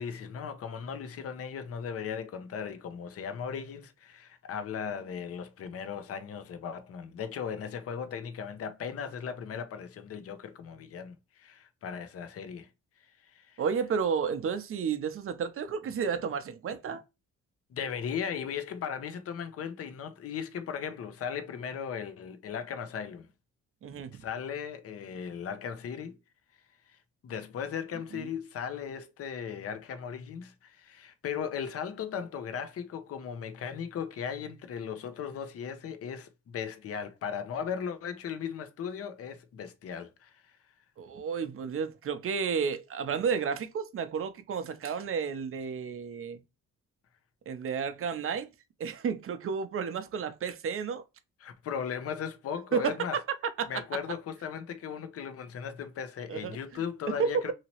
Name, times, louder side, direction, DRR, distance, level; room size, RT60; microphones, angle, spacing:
voice 1, 0.0-12.7 13.2-13.6 17.7-23.3 24.1-26.2 26.9-40.5 51.4-53.2 53.7-57.5, left 7 dB, 50° left, 0.7 m, -37 dB
voice 2, 13.6-17.0 23.8-24.2 28.1-28.3 41.0-46.4 47.5-48.5 48.8-51.1 52.7-53.2 53.6-53.7 56.3-56.6 57.1-57.3, right 6 dB, 45° right, 0.6 m, -32 dB
2.9 x 2.9 x 2.8 m
cardioid pair, 90°, 30 cm